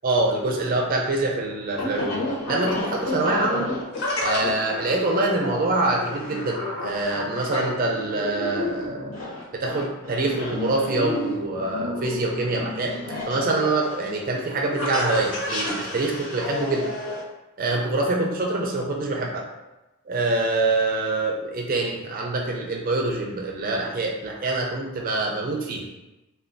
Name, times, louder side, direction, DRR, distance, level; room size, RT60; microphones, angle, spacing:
voice 1, 0.0-2.2 2.5-3.7 4.2-9.1 9.5-12.9 13.3-16.9 17.6-19.5 20.1-25.9, right 2 dB, 40° right, -1 dB, 0.5 m, -25 dB
sound 1, 0.6-17.2, left 1 dB, 80° left, 0.8 m, -31 dB
3.3 x 2.3 x 2.5 m, 1.0 s
head